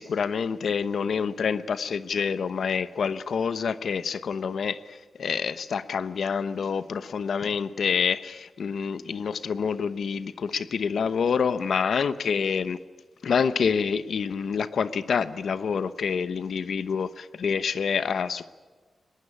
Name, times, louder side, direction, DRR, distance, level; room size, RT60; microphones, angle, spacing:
voice 1, 0.0-12.8 13.2-18.5, left 6 dB, 75° left, 13 dB, 0.9 m, -27 dB
22.0 x 19.0 x 9.9 m, 1.4 s
wide cardioid pair, 90°, 0 cm